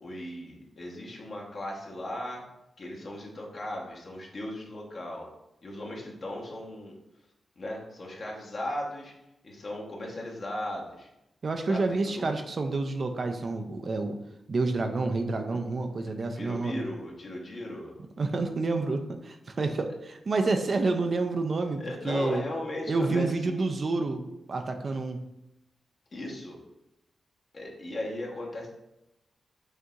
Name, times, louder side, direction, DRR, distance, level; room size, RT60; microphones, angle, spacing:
voice 1, 0.0-2.4 2.8-5.3 5.6-7.0 7.6-9.1 9.4-11.1 11.7-12.3 16.4-18.0 21.8-23.7 26.1-26.6 27.5-28.7, left 1 dB, 50° left, -2 dB, 1.1 m, -37 dB
voice 2, 11.4-14.2 14.5-16.8 18.2-22.4 22.9-25.2, right 3 dB, 50° right, 6 dB, 0.4 m, -29 dB
6.2 x 2.8 x 2.4 m, 0.88 s
cardioid pair, 90°, 0 cm